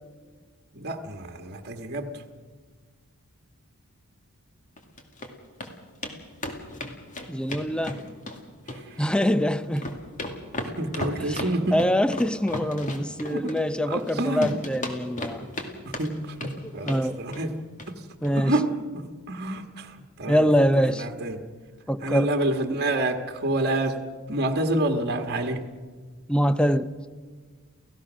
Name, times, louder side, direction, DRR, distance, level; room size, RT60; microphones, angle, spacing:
voice 1, 0.7-2.2 8.7-9.0 10.6-11.8 13.3-13.5 13.9-14.6 15.8-17.5 17.9-18.0 18.3-18.7 18.9-21.4 22.0-25.6, right 1 dB, 50° right, 5 dB, 1.5 m, -28 dB
sound 1, 4.8-5.3 5.6-5.7 6.0-6.1 6.4-8.4 8.7-9.4 9.6-14.1 14.4-15.7 15.9-16.5 16.8-17.0 17.3-17.5 17.8-17.9 18.2-18.3, left 1 dB, 35° left, 2.3 m, -34 dB
voice 2, 7.3-8.0 9.0-10.0 11.3-11.4 11.7-15.5 16.8-17.2 18.2-18.5 20.3-21.0 21.9-22.3 26.3-27.0, equal, 5° left, 13 dB, 0.6 m, -24 dB
29.5 x 15.5 x 6.2 m, 1.5 s
head